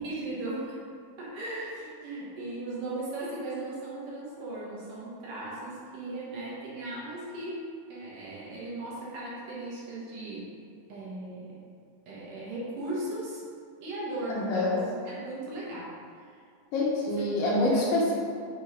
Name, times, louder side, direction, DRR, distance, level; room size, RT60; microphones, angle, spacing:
voice 1, 0.0-0.7 1.2-7.6 7.9-10.5 10.9-11.6 12.1-13.4 13.8-14.8 15.0-15.9 17.7-17.9, right 2 dB, 65° right, -7 dB, 2.7 m, -37 dB
voice 2, 14.3-14.8 16.7-18.1, left 2 dB, 70° left, -5 dB, 2.6 m, -26 dB
6.7 x 3.8 x 5.0 m, 2.3 s
omnidirectional pair, 4.3 m